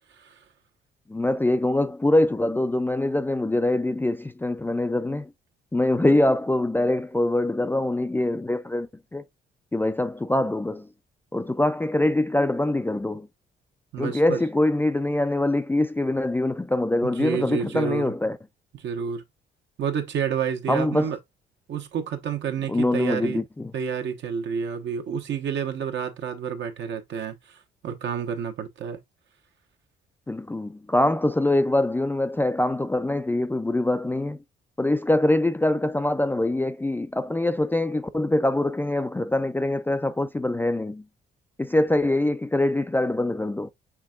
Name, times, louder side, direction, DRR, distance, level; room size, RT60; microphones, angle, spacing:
voice 1, 0.1-0.4 13.9-14.4 17.0-18.1 18.7-19.2 19.8-21.2 21.7-23.4 23.7-29.0, right 7 dB, 65° right, 1.1 m, -29 dB
voice 2, 1.1-5.3 5.7-9.3 9.7-10.9 11.3-13.3 14.0-18.4 20.7-21.1 22.7-23.7 30.3-34.4 34.8-41.0 41.6-43.7, left 1 dB, 10° left, 0.3 m, -24 dB
6.0 x 3.5 x 2.4 m
cardioid pair, 90°, 20 cm